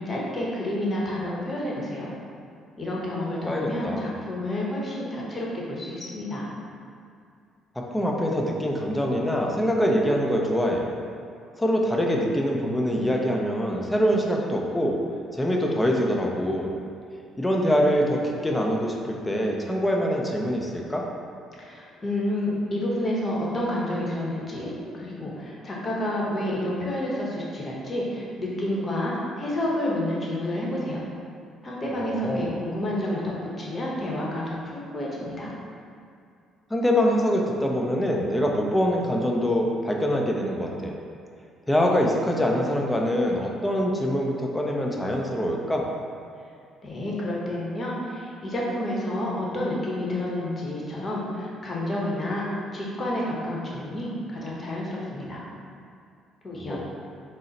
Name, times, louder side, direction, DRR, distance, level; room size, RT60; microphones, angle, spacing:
voice 1, 0.0-2.1 2.8-6.5 21.6-31.0 31.6-35.5 46.8-55.5 56.4-56.8, left 1 dB, 35° left, -4 dB, 0.9 m, -29 dB
voice 2, 3.5-4.1 7.9-10.8 11.6-15.0 15.3-16.7 17.4-21.0 31.9-32.5 36.7-40.9 41.7-45.9 56.5-56.8, equal, 10° left, 0 dB, 0.5 m, -24 dB
3.8 x 2.1 x 4.0 m, 2.4 s
supercardioid pair, 75°, 0 cm